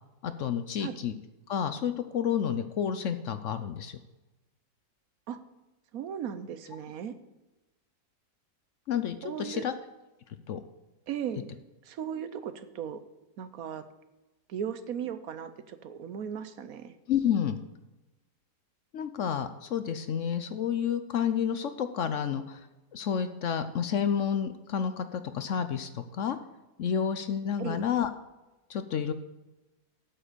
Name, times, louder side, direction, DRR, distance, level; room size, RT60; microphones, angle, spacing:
voice 1, 0.2-1.1 1.5-4.0 8.9-9.7 10.5-10.6 17.1-17.6 18.9-22.7 22.9-26.4 26.8-28.1 28.7-29.1, left 8 dB, 60° left, 10 dB, 0.9 m, -30 dB
voice 2, 5.9-7.2 9.2-9.6 11.1-11.5 11.8-13.0 13.4-13.8 14.5-17.0 27.6-27.8, right 8 dB, 65° right, 12 dB, 1.1 m, -37 dB
8.8 x 7.6 x 6.6 m, 1.1 s
omnidirectional pair, 1.7 m